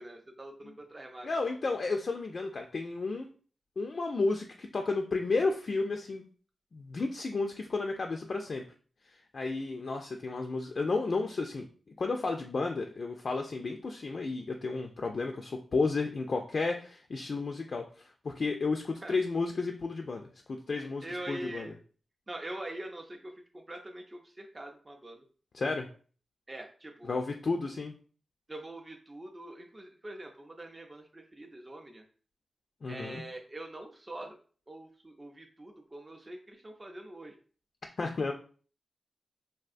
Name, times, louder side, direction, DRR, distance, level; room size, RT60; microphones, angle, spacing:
voice 1, 0.0-1.3 19.0-19.1 20.7-21.7 22.3-25.2 26.5-27.1 28.5-32.0 32.9-34.3 34.7-37.4, right 1 dB, 30° right, 2 dB, 0.4 m, -44 dB
voice 2, 1.2-3.3 3.8-6.2 6.7-8.6 9.0-11.7 12.0-21.7 25.5-25.9 27.0-28.0 32.8-33.2 38.0-38.3, left 3 dB, 60° left, 3 dB, 0.3 m, -32 dB
3.4 x 2.3 x 2.4 m, 0.41 s
cardioid pair, 70°, 0 cm